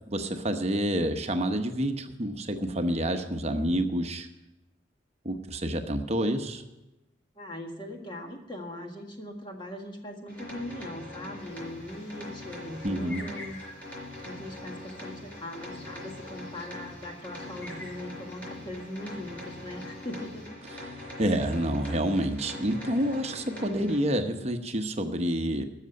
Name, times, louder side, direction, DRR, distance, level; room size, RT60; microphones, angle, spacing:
voice 1, 0.1-4.3 5.2-6.6 12.8-13.2 20.8-25.6, right 1 dB, 35° right, 6 dB, 0.9 m, -28 dB
voice 2, 7.3-13.6 14.2-20.6 22.8-23.1, left 1 dB, 25° left, 2 dB, 1.7 m, -40 dB
sound 1, 10.3-24.0, left 1 dB, 10° left, 4.5 m, -42 dB
sound 2, 11.4-20.5, left 2 dB, 65° left, 4.0 m, -51 dB
13.0 x 6.7 x 9.5 m, 1.0 s
head